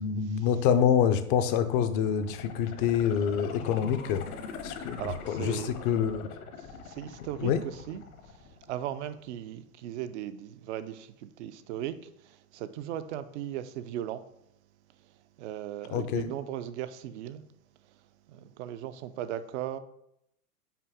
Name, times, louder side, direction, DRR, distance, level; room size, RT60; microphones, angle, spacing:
voice 1, 0.0-4.3 4.6-6.3 7.4-7.6 15.9-16.3, left 8 dB, 35° left, 0.5 m, -26 dB
sound 1, 2.1-9.0 9.4-9.5, left 5 dB, 65° left, 1.1 m, -43 dB
voice 2, 4.8-5.7 6.6-14.2 15.0-17.4 17.8-19.8, right 11 dB, 50° right, 0.5 m, -38 dB
5.7 x 4.6 x 3.5 m
hypercardioid pair, 110°, 46 cm